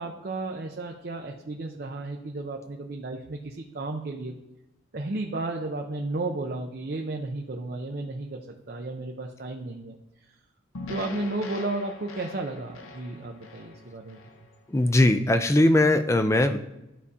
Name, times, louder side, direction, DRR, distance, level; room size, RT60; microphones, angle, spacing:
voice 1, 0.0-4.4 4.9-10.0 10.2-10.3 10.9-14.2, right 2 dB, 45° right, 2 dB, 0.5 m, -33 dB
sound 1, 10.7-15.1, left 3 dB, 90° left, 0.7 m, -43 dB
voice 2, 14.7-16.6, left 1 dB, 15° left, 9 dB, 0.4 m, -20 dB
12.0 x 4.8 x 2.8 m, 0.93 s
head